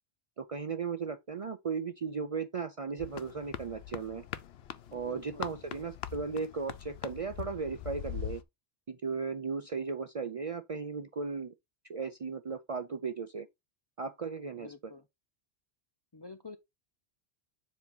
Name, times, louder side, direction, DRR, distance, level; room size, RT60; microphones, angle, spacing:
voice 1, 0.4-4.2 4.9-8.4 8.9-11.5 11.9-13.5 14.0-14.7, right 5 dB, 50° right, 0.4 m, -36 dB
Concrete Sneaker Run Exterior, 3.0-8.4, left 10 dB, 70° left, 0.9 m, -42 dB
voice 2, 4.9-5.5 14.6-15.1 16.1-16.6, left 4 dB, 35° left, 0.4 m, -48 dB
7.3 x 2.9 x 5.3 m
omnidirectional pair, 1.1 m